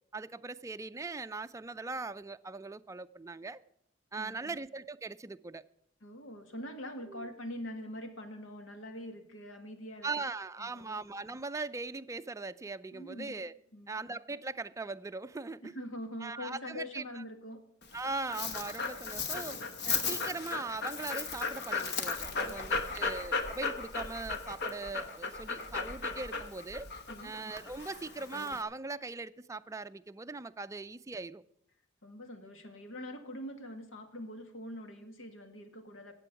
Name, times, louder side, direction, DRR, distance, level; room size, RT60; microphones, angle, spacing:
voice 1, 0.1-3.6 4.1-5.6 7.1-7.3 10.0-13.5 13.9-15.7 16.2-17.2 17.9-26.9 27.2-31.4, right 3 dB, 15° right, 0.4 m, -40 dB
voice 2, 4.2-4.6 6.0-10.1 10.6-11.0 12.9-13.4 13.7-14.0 15.6-17.7 22.3-23.1 27.1-27.3 32.0-36.1, left 1 dB, 90° left, 1.8 m, -44 dB
Dog, 17.8-28.6, left 4 dB, 60° left, 1.2 m, -36 dB
15.0 x 8.4 x 5.9 m
head